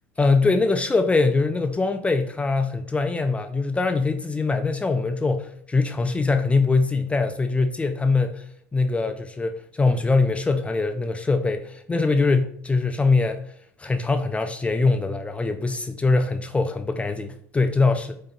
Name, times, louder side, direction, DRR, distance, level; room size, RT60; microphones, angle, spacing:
voice 1, 0.2-13.4 13.8-18.2, left 3 dB, 15° left, 0.4 m, -22 dB
7.1 x 2.8 x 2.3 m
hypercardioid pair, 80°, 8 cm